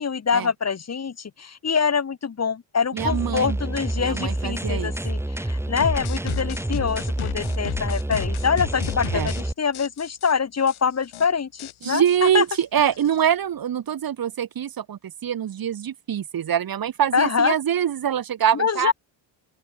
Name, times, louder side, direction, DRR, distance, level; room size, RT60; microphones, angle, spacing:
voice 1, 0.0-12.0 12.3-12.4 17.1-17.5 18.5-18.9, left 6 dB, 30° left, 1.8 m, -25 dB
voice 2, 2.9-3.6 4.0-4.9 9.1-9.3 11.8-18.9, right 9 dB, 45° right, 1.4 m, -24 dB
sound 1, 3.0-9.5, right 1 dB, 5° right, 2.1 m, -28 dB
sound 2, 5.8-9.4 9.7-10.3 10.7-10.8 11.0-11.3 11.6-13.3, left 14 dB, 80° left, 7.9 m, -34 dB
open air
cardioid pair, 110°, 48 cm